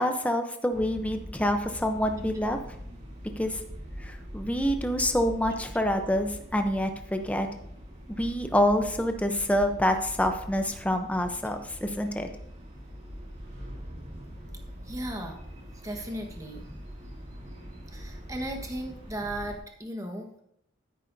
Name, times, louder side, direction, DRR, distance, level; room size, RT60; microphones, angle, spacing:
voice 1, 0.0-2.6 3.4-3.6 4.0-7.5 8.2-12.3, equal, 5° left, 5 dB, 0.7 m, -27 dB
sound 1, 0.7-19.6, equal, 35° right, 2.5 m, -43 dB
voice 2, 14.9-15.4 15.8-16.7 17.9-20.4, right 1 dB, 15° right, 3 dB, 1.4 m, -36 dB
12.5 x 11.0 x 2.7 m, 0.71 s
head